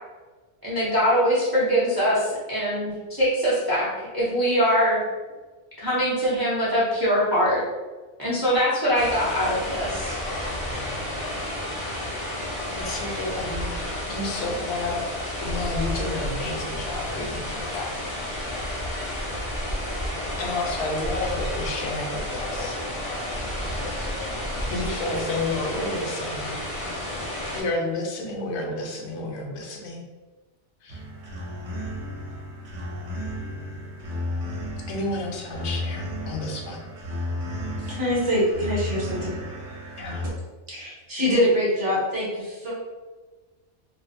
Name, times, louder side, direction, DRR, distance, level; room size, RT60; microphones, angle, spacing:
voice 1, 0.6-3.9 4.1-5.0 5.8-7.6 8.2-10.2, equal, 35° right, -8 dB, 0.4 m, -22 dB
sound 1, 8.9-27.6, left 1 dB, 35° left, 0.6 m, -31 dB
voice 2, 12.7-13.8 14.1-15.0 15.4-18.0 20.4-22.7 24.7-26.6 27.5-30.0 30.8-31.0 34.9-36.8 40.0-40.2, left 2 dB, 70° left, 1 dB, 0.8 m, -31 dB
sound 2, 30.9-40.3, left 1 dB, 75° right, 0.9 m, -33 dB
voice 3, 37.8-39.3 39.7-39.8 40.7-42.7, equal, 50° right, -6 dB, 1.0 m, -24 dB
2.5 x 2.3 x 2.5 m, 1.3 s
omnidirectional pair, 1.3 m